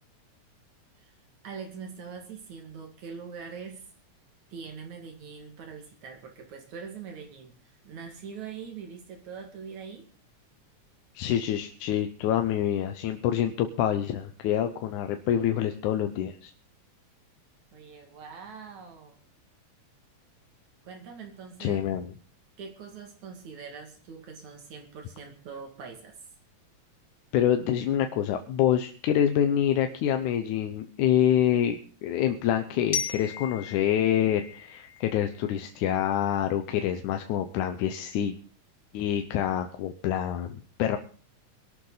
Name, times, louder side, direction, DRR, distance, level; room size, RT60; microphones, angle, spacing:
voice 1, 1.4-3.8 4.5-10.0 17.7-19.2 20.8-21.9 22.6-26.2, right 6 dB, 75° right, 3 dB, 3.5 m, -43 dB
voice 2, 11.1-16.5 21.6-22.1 27.3-38.4 38.9-41.0, left 10 dB, 90° left, 7 dB, 2.4 m, -26 dB
Glockenspiel, 32.9-35.8, left 6 dB, 20° left, 2.0 m, -37 dB
22.5 x 12.0 x 4.0 m, 0.42 s
omnidirectional pair, 3.4 m